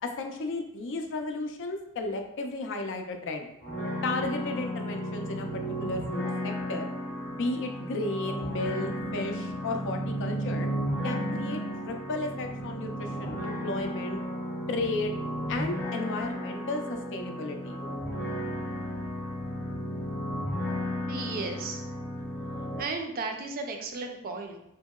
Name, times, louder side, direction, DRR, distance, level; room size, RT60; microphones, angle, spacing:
voice 1, 0.0-3.5 4.0-6.8 7.3-10.7 11.0-14.2 14.7-15.2 15.5-17.8, left 2 dB, 55° left, 4 dB, 0.4 m, -34 dB
sound 1, 3.6-22.8, equal, 10° left, 0.6 m, -34 dB
voice 2, 21.1-21.9 22.8-24.6, right 3 dB, 40° right, 4 dB, 0.4 m, -35 dB
2.8 x 2.7 x 2.3 m, 0.81 s
head